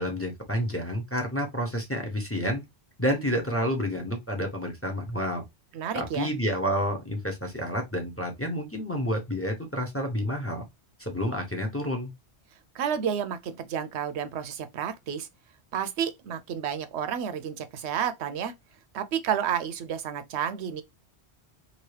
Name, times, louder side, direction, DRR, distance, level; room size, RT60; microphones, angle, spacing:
voice 1, 0.0-2.6 3.0-5.4 5.9-10.6 11.0-12.1, equal, 15° left, 0.7 m, -29 dB
voice 2, 5.7-6.3 12.7-15.3 15.7-18.5 18.9-20.8, right 8 dB, 85° right, 0.9 m, -30 dB
2.9 x 2.7 x 3.2 m
omnidirectional pair, 1.1 m